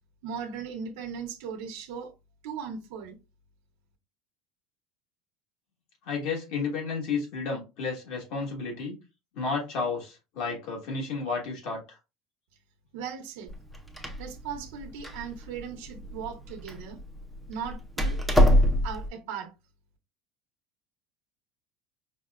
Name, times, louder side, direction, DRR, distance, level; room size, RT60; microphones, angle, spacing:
voice 1, 0.2-2.1 2.4-3.2 12.9-13.5 14.2-17.0 17.5-18.2 18.8-19.5, right 7 dB, 80° right, 0.9 m, -38 dB
voice 2, 6.0-9.0 9.3-11.8, left 4 dB, 60° left, 1.4 m, -32 dB
Door, 13.5-19.1, equal, ahead, 0.5 m, -26 dB
5.2 x 2.2 x 2.4 m
cardioid pair, 165°, 0 cm